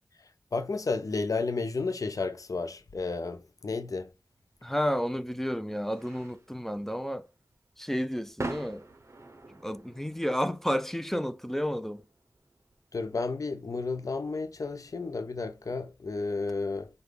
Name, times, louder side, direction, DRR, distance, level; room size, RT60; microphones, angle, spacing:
voice 1, 0.5-4.1 12.9-16.9, left 3 dB, 65° left, 0.5 m, -32 dB
sound 1, 4.5-15.8, right 2 dB, 50° right, 0.7 m, -46 dB
voice 2, 4.6-7.3 7.8-8.8 9.5-12.0, equal, 5° left, 0.4 m, -31 dB
4.9 x 2.2 x 3.3 m
cardioid pair, 40°, 6 cm